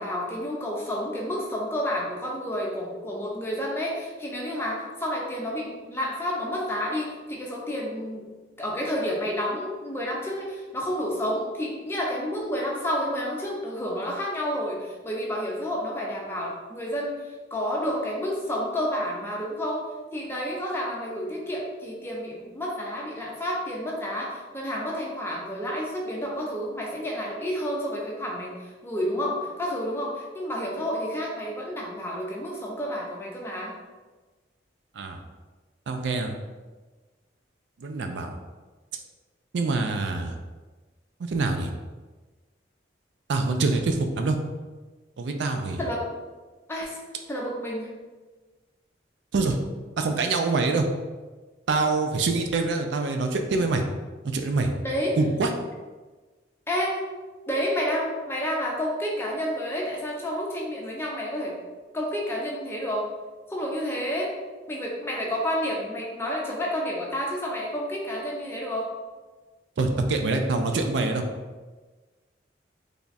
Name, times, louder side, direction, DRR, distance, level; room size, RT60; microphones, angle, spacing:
voice 1, 0.0-8.3 8.6-33.8 45.8-46.0 46.7-47.0 47.3-47.9 54.8-55.2 56.7-57.0 57.5-61.6 61.9-63.1 63.5-64.3 64.7-68.9, equal, 15° left, -2 dB, 0.6 m, -30 dB
voice 2, 35.9-36.4 37.8-38.3 39.5-40.3 41.2-41.7 43.3-44.4 45.2-45.8 49.3-49.6 50.0-50.9 51.7-53.8 54.2-54.7 55.2-55.5 69.8-71.2, right 3 dB, 75° right, 5 dB, 0.4 m, -25 dB
3.4 x 2.3 x 4.0 m, 1.3 s
head